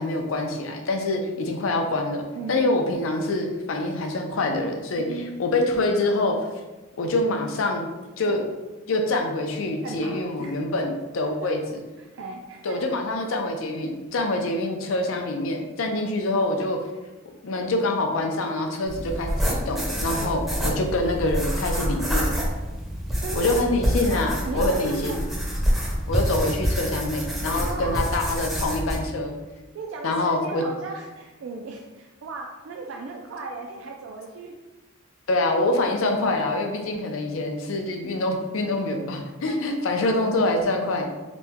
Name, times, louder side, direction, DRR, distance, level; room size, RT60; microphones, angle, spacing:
voice 1, 0.0-5.1 5.4-6.4 7.0-7.9 8.2-8.4 8.9-11.6 12.6-16.8 17.4-22.3 23.4-25.2 26.1-29.3 30.0-30.6 35.3-41.1, left 2 dB, 80° left, 3 dB, 0.5 m, -25 dB
voice 2, 2.3-2.6 5.0-5.4 9.8-10.6 11.2-11.5 12.0-12.8 20.2-20.4 23.2-23.6 24.1-24.2 24.5-25.2 27.5-28.0 28.4-28.5 29.7-34.5 39.5-40.5, right 3 dB, 70° right, 1 dB, 0.3 m, -36 dB
sound 1, 18.9-29.0, equal, ahead, 0.5 m, -27 dB
2.9 x 2.1 x 3.4 m, 1.1 s
head